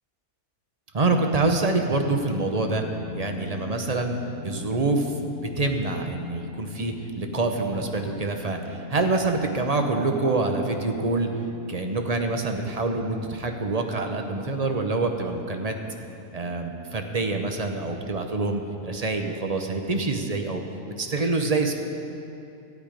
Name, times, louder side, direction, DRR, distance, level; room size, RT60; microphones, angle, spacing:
voice 1, 0.9-2.8 3.2-4.2 4.4-8.6 8.9-11.3 11.7-15.7 16.3-20.6 21.0-21.7, right 3 dB, 35° right, 4 dB, 0.7 m, -26 dB
sound 1, 2.6-18.2, left 7 dB, 90° left, 1.5 m, -43 dB
13.0 x 10.5 x 5.1 m, 2.7 s
omnidirectional pair, 1.5 m